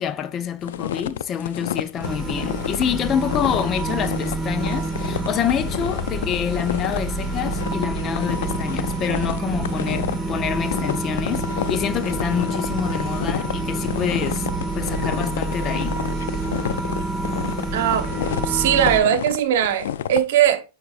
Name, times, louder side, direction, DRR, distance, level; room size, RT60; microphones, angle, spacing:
voice 1, 0.0-14.5 14.7-16.0, left 9 dB, 30° left, 0.6 m, -27 dB
Walking in Snow, 0.6-20.2, left 10 dB, 80° left, 0.4 m, -30 dB
sound 1, 2.0-19.0, right 2 dB, 5° left, 1.8 m, -27 dB
voice 2, 17.7-18.1 18.4-20.6, right 10 dB, 70° right, 1.1 m, -19 dB
8.6 x 4.4 x 2.5 m
supercardioid pair, 130°, 0 cm